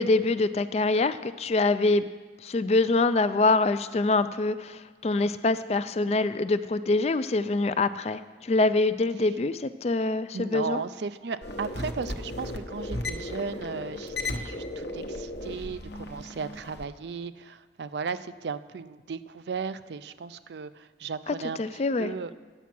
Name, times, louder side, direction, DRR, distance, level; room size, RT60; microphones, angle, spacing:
voice 1, 0.0-2.1 2.4-10.8 21.3-22.3, left 3 dB, 35° left, 13 dB, 0.3 m, -25 dB
voice 2, 10.3-22.3, right 5 dB, 70° right, 13 dB, 0.4 m, -36 dB
sound 1, 11.4-16.8, left 1 dB, 65° left, 0.9 m, -35 dB
9.9 x 8.2 x 6.0 m, 1.4 s
head